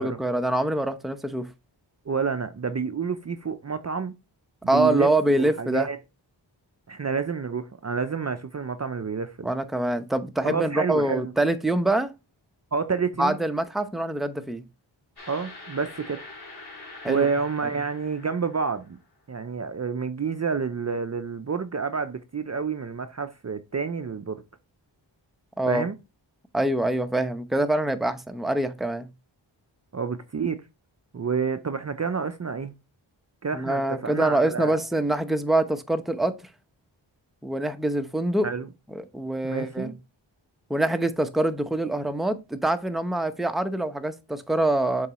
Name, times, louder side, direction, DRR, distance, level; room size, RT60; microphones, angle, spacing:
voice 1, 0.0-1.5 4.7-5.9 9.4-12.1 13.2-14.6 17.0-17.3 25.6-25.8 26.5-29.1 33.5-36.4 37.4-38.5 38.9-39.9 40.7-45.1, right 1 dB, ahead, 0.7 m, -25 dB
voice 2, 2.1-4.1 4.6-6.0 6.9-9.5 10.4-11.3 12.7-13.4 15.3-16.2 17.1-19.0 19.3-24.4 25.7-26.0 29.9-30.6 31.1-32.7 33.4-34.8 38.4-38.7 39.4-40.0, right 5 dB, 35° right, 0.5 m, -29 dB
sound 1, 15.2-19.0, left 2 dB, 55° left, 2.7 m, -44 dB
7.1 x 4.6 x 2.9 m
wide cardioid pair, 70°, 47 cm